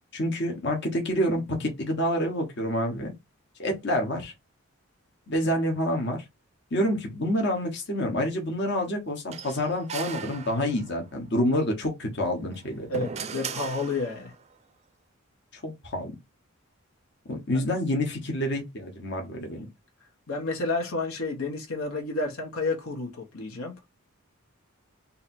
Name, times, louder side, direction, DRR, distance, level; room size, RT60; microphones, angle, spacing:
voice 1, 0.1-3.1 3.6-4.3 5.3-6.2 6.7-12.9 15.6-16.1 17.3-19.7, equal, 50° left, 1.2 m, -28 dB
sound 1, 9.3-11.0 12.4-14.4, right 6 dB, 30° right, 0.4 m, -38 dB
voice 2, 12.9-14.3 20.3-23.8, left 3 dB, 70° left, 1.2 m, -30 dB
3.3 x 2.8 x 4.3 m
head